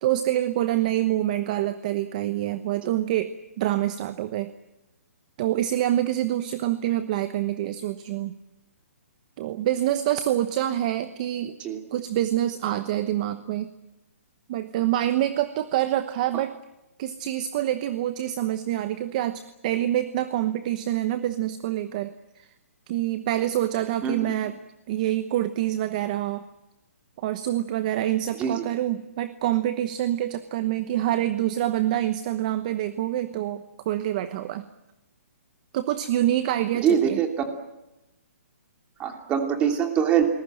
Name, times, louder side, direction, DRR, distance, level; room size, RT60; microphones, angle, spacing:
voice 1, 0.0-4.5 5.4-8.3 9.4-11.5 11.9-13.7 14.5-16.6 17.0-22.5 22.9-24.6 24.9-26.4 27.2-34.6 35.7-37.2, right 13 dB, 30° right, 11 dB, 1.0 m, -26 dB
voice 2, 36.8-37.3 39.0-40.3, right 8 dB, 15° right, 4 dB, 2.8 m, -23 dB
29.0 x 21.0 x 7.8 m, 0.94 s
hypercardioid pair, 165°, 8 cm